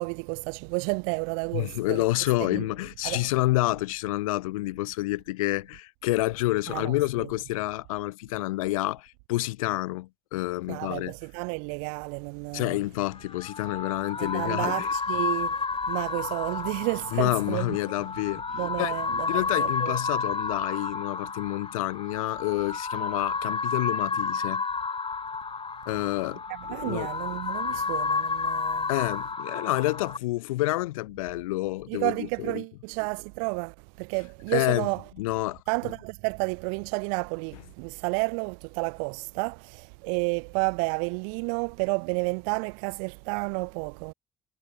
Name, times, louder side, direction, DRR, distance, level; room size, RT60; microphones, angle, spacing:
voice 1, 0.0-2.0 2.4-2.6 3.0-3.3 6.7-7.0 10.7-12.8 14.2-15.6 15.9-17.8 18.5-20.0 26.5-28.9 31.9-35.0 35.7-44.1, right 40 dB or more, 80° right, 0.9 m, -31 dB
voice 2, 1.5-11.1 12.5-14.9 17.1-18.9 19.3-24.6 25.9-26.4 26.7-27.1 27.7-27.8 28.9-32.6 34.5-34.9 35.2-35.6, left 19 dB, 90° left, 0.9 m, -28 dB
sound 1, 13.2-30.2, left 5 dB, 30° left, 2.1 m, -31 dB
hypercardioid pair, 55°, 17 cm